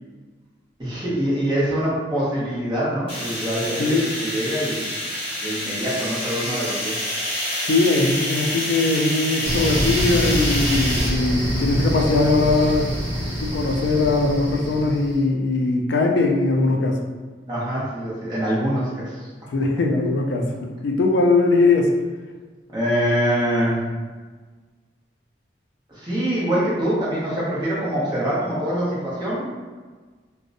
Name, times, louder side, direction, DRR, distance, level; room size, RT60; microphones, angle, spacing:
voice 1, 0.8-4.9 5.4-6.9 17.5-19.3 22.7-23.9 25.9-29.5, equal, 25° right, -8 dB, 0.6 m, -24 dB
sound 1, 3.1-11.1, left 1 dB, 30° left, 0.8 m, -27 dB
voice 2, 3.8-4.1 7.6-12.9 13.4-17.0 19.5-21.9, left 3 dB, 75° left, 2 dB, 0.3 m, -20 dB
sound 2, 9.4-15.2, equal, 75° right, 0.8 m, -26 dB
2.6 x 2.0 x 2.5 m, 1.4 s
head